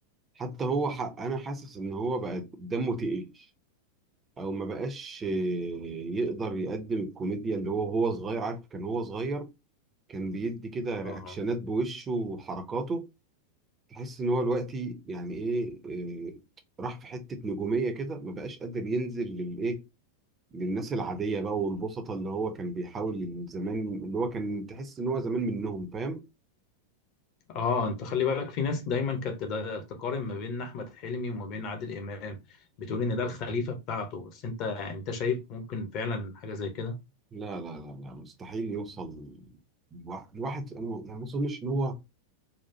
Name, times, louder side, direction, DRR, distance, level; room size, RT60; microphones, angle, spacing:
voice 1, 0.4-3.5 4.4-9.5 10.1-13.1 13.9-16.4 16.8-19.8 20.5-26.2 37.3-39.5 39.9-42.0, right 3 dB, 20° right, 0.8 m, -32 dB
voice 2, 11.0-11.4 27.5-32.4 32.8-36.9, left 4 dB, 40° left, 1.0 m, -32 dB
4.2 x 2.4 x 2.8 m
figure-of-eight pair, 90°, 0 cm